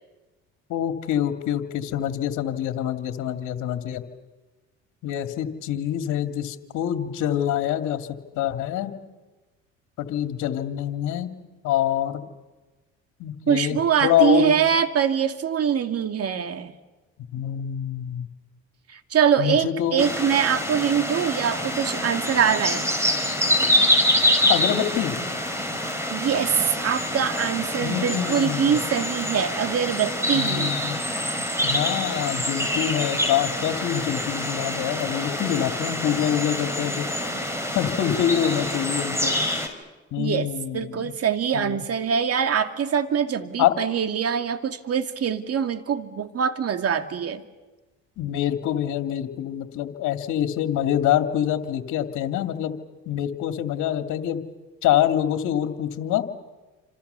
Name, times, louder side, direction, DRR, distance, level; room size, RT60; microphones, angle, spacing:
voice 1, 0.7-4.0 5.0-8.1 8.3-8.9 10.0-11.3 11.6-12.2 13.2-14.7 17.3-18.3 19.4-20.0 24.5-25.2 27.8-28.8 30.3-31.0 31.6-37.1 37.7-39.3 40.1-41.1 41.5-41.8 43.6-43.7 48.2-52.8 53.1-54.4 54.8-56.2, left 11 dB, 65° left, 6 dB, 2.5 m, -25 dB
voice 2, 13.5-16.7 18.9-22.9 25.8-30.8 40.2-47.4, right 8 dB, 50° right, 8 dB, 2.4 m, -24 dB
sound 1, 20.0-39.7, left 1 dB, 10° right, 5.7 m, -26 dB
30.0 x 26.5 x 7.0 m, 1.2 s
supercardioid pair, 75°, 32 cm